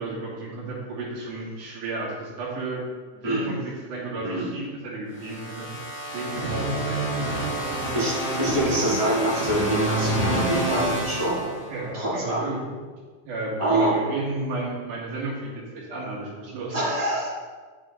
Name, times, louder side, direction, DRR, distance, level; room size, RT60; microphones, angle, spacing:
voice 1, 0.0-2.8 3.1-7.8 8.3-8.4 11.7-12.9 13.3-16.8, right 2 dB, 80° right, -6 dB, 3.7 m, -33 dB
voice 2, 4.2-4.5 7.9-11.5 11.9-12.6 13.6-13.9 16.7-17.3, right 1 dB, 10° right, -9 dB, 2.7 m, -25 dB
sound 1, 5.2-12.1, right 1 dB, 5° left, 1.1 m, -28 dB
8.9 x 7.3 x 3.8 m, 1.5 s
omnidirectional pair, 3.5 m